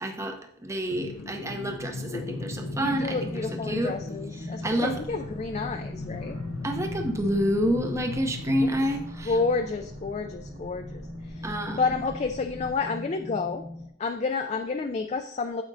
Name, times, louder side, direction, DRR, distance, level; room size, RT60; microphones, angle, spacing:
voice 1, 0.0-3.2 3.7-4.0 4.6-5.0 6.6-9.4 11.4-11.8, equal, 15° right, 4 dB, 0.6 m, -28 dB
sound 1, 0.9-9.0, left 3 dB, 90° left, 0.6 m, -38 dB
sound 2, 2.2-13.9, left 1 dB, 40° right, 1.4 m, -40 dB
voice 2, 2.8-6.4 8.6-8.9 9.3-13.6 14.0-15.6, left 4 dB, 30° left, 6 dB, 0.3 m, -30 dB
sound 3, 4.9-12.8, equal, 75° right, 2.1 m, -46 dB
9.3 x 7.2 x 2.6 m, 0.72 s
head